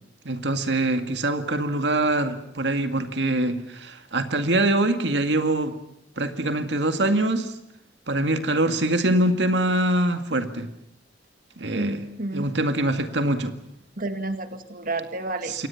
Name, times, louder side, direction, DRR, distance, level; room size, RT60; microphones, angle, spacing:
voice 1, 0.3-5.7 6.2-7.5 8.1-10.7 11.6-12.0 12.3-13.5 15.5-15.7, right 1 dB, 80° right, 7 dB, 2.1 m, -24 dB
voice 2, 11.7-12.5 14.0-15.7, right 2 dB, 50° right, 8 dB, 2.1 m, -30 dB
28.5 x 24.0 x 5.9 m, 0.75 s
head